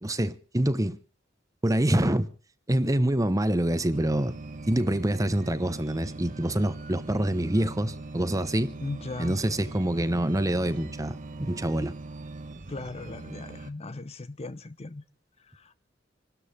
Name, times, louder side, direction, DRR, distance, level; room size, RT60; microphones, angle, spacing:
voice 1, 0.0-1.0 1.6-2.3 2.7-4.3 4.7-8.7 9.2-11.9, right 1 dB, 20° right, 0.9 m, -26 dB
sound 1, 3.9-13.7, right 2 dB, 45° right, 1.1 m, -41 dB
voice 2, 8.8-9.4 12.7-15.0 15.4-15.7, left 2 dB, 35° left, 0.7 m, -37 dB
27.0 x 13.0 x 3.4 m
head